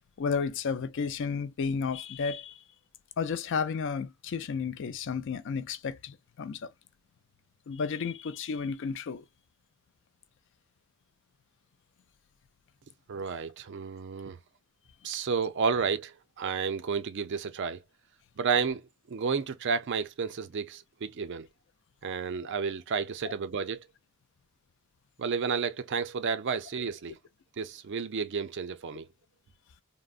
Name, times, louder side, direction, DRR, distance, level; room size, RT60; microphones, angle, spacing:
voice 1, 0.2-2.6 3.2-6.7 7.7-9.2, left 5 dB, 60° left, 0.4 m, -32 dB
voice 2, 13.1-14.4 15.0-17.8 18.4-18.8 19.1-21.5 22.0-23.9 25.2-27.2 27.6-29.1, right 5 dB, 55° right, 0.4 m, -31 dB
3.6 x 2.0 x 2.4 m
head